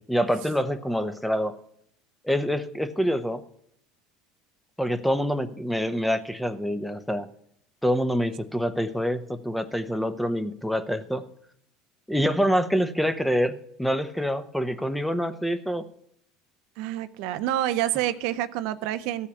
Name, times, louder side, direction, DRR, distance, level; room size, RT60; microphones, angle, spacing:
voice 1, 0.0-1.6 2.2-3.4 4.8-7.3 7.8-11.3 12.1-15.9, equal, ahead, 10 dB, 0.8 m, -26 dB
voice 2, 16.8-19.3, right 13 dB, 70° right, 11 dB, 0.6 m, -27 dB
14.5 x 5.7 x 8.3 m, 0.71 s
supercardioid pair, 105°, 0 cm